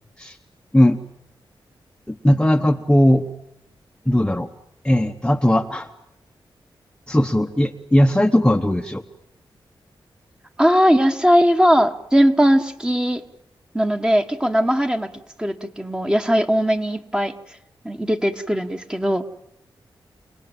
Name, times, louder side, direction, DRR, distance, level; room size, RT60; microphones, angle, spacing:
voice 1, 2.1-3.3 4.1-4.5 4.8-5.9 7.1-9.0, left 1 dB, 10° left, 5 dB, 1.0 m, -18 dB
voice 2, 10.6-13.2 13.7-15.1 15.4-17.3 17.8-19.2, equal, 10° right, 7 dB, 1.5 m, -19 dB
29.0 x 19.0 x 9.1 m, 0.83 s
wide cardioid pair, 100°, 9 cm